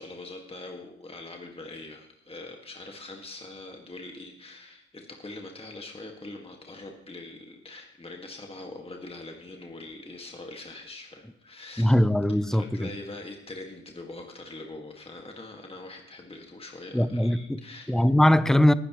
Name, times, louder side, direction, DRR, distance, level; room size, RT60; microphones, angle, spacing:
voice 1, 0.0-12.0 12.3-18.0, left 2 dB, 20° left, 1.9 m, -43 dB
voice 2, 11.8-12.9 16.9-17.6 17.9-18.7, left 1 dB, ahead, 0.7 m, -21 dB
20.5 x 9.9 x 3.1 m
supercardioid pair, 55°, 29 cm